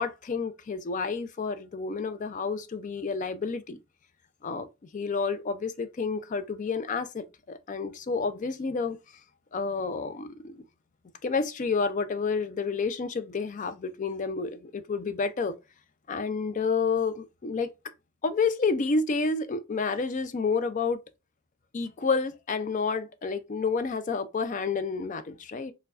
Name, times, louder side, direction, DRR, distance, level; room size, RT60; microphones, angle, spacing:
voice 1, 0.0-3.8 4.4-4.7 4.9-9.0 9.5-10.6 11.2-15.6 16.1-17.7 18.2-21.0 21.7-25.7, left 4 dB, 35° left, 0.4 m, -29 dB
4.6 x 2.2 x 2.4 m
head